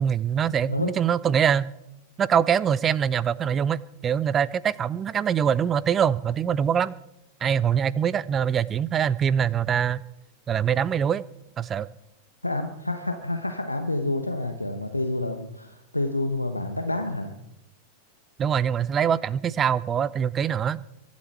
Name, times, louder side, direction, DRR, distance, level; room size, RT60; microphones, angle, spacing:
voice 1, 0.0-1.7 2.2-6.9 7.4-10.0 10.5-11.2 11.6-11.9 18.4-20.8, right 8 dB, 25° right, 21 dB, 0.6 m, -23 dB
voice 2, 12.4-17.3, left 2 dB, 85° left, 7 dB, 1.2 m, -28 dB
23.5 x 11.5 x 4.5 m, 0.83 s
figure-of-eight pair, 90°, 0 cm